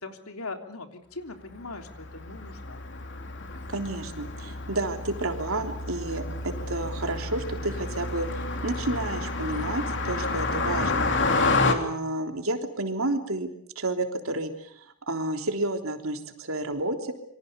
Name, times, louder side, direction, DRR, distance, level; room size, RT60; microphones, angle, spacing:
voice 1, 0.0-2.8, left 3 dB, 80° left, 5 dB, 3.3 m, -40 dB
Car passing by, 1.6-11.7, left 3 dB, 55° left, 3.1 m, -30 dB
voice 2, 3.7-11.3 11.6-17.1, right 2 dB, 70° right, 5 dB, 3.5 m, -31 dB
27.5 x 24.5 x 6.9 m, 0.69 s
head